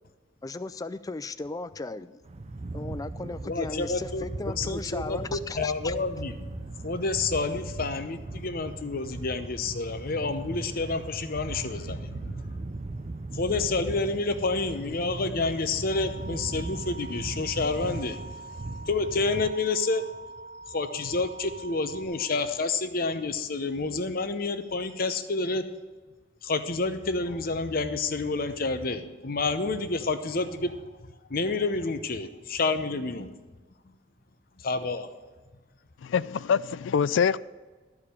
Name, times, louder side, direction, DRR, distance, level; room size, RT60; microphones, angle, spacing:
voice 1, 0.4-2.2 2.7-6.0, left 3 dB, 20° left, 0.4 m, -36 dB
sound 1, 2.2-19.5, right 2 dB, 35° right, 0.5 m, -38 dB
voice 2, 3.4-6.5 6.8-12.5 13.3-18.2 18.9-20.0 20.7-25.6 26.4-30.8 31.3-33.3 34.6-35.1, left 3 dB, 50° left, 0.8 m, -29 dB
sound 2, 15.9-22.1, right 3 dB, 60° right, 1.9 m, -45 dB
voice 3, 36.0-37.4, left 7 dB, 90° left, 0.3 m, -24 dB
13.0 x 4.9 x 8.4 m
head